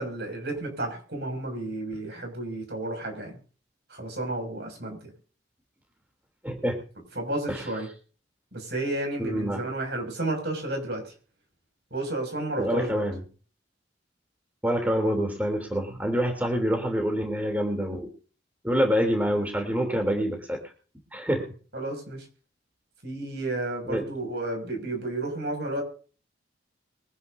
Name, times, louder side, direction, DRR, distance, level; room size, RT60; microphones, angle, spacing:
voice 1, 0.0-3.4 3.9-5.1 7.1-7.9 8.5-11.1 11.9-13.1 21.7-22.2 23.0-25.8, right 2 dB, 60° right, 3 dB, 6.6 m, -32 dB
voice 2, 6.4-6.8 7.5-7.6 9.2-9.7 12.6-13.2 14.6-18.1 18.6-20.6 21.1-21.5 23.9-24.0, equal, 10° right, 3 dB, 3.3 m, -26 dB
24.0 x 10.5 x 2.8 m, 0.39 s
head